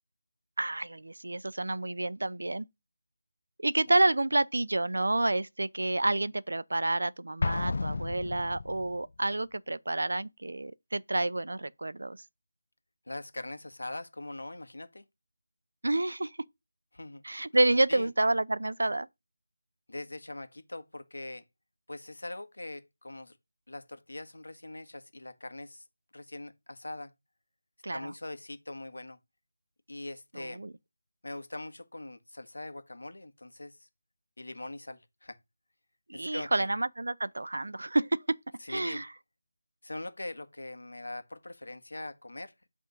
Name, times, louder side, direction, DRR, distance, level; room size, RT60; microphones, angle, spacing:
voice 1, 0.6-2.7 3.6-12.2 15.8-16.3 17.2-19.1 27.8-28.1 30.3-30.7 36.1-38.4 38.7-39.1, right 2 dB, 70° right, 0.5 m, -29 dB
Explosion, 7.4-9.0, left 3 dB, 35° left, 0.3 m, -32 dB
voice 2, 13.1-15.0 16.9-17.2 17.9-18.1 19.9-21.4 21.9-23.4 23.7-25.8 26.1-27.1 27.9-29.2 29.9-30.6 31.2-33.9 34.4-35.4 36.1-36.7 38.6-39.0 39.8-42.5, left 2 dB, 90° left, 1.5 m, -42 dB
8.2 x 3.6 x 5.2 m
figure-of-eight pair, 180°, 0 cm